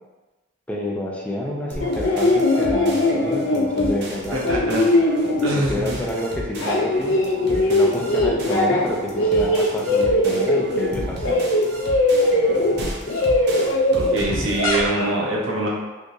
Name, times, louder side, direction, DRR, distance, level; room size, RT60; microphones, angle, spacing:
voice 1, 0.7-4.4 5.4-7.2 7.5-11.5, left 1 dB, 5° left, -2 dB, 0.3 m, -29 dB
sound 1, 1.7-6.1 6.4-8.9 9.1-15.1, left 1 dB, 75° left, 0.5 m, -20 dB
sound 2, 1.7-14.6, right 1 dB, 55° right, 0.6 m, -34 dB
voice 2, 4.3-4.8 5.4-6.0 13.9-15.7, right 2 dB, 85° right, -3 dB, 0.8 m, -24 dB
3.5 x 2.8 x 2.6 m, 1.2 s
head